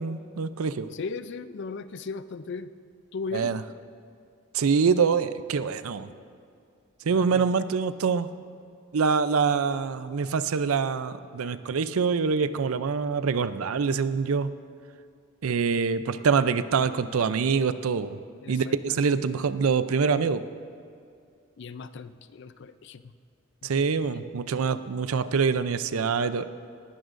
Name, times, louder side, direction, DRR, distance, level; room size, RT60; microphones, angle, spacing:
voice 1, 0.0-0.9 3.3-3.6 4.5-6.1 7.1-8.3 8.9-14.5 15.4-18.2 18.5-20.4 23.6-26.5, right 5 dB, 90° right, 13 dB, 0.5 m, -25 dB
voice 2, 0.9-2.7 3.1-3.5 7.1-7.5 18.4-19.0 21.6-23.0 23.6-24.1, left 4 dB, 55° left, 13 dB, 0.4 m, -37 dB
19.0 x 15.0 x 2.6 m, 2.4 s
head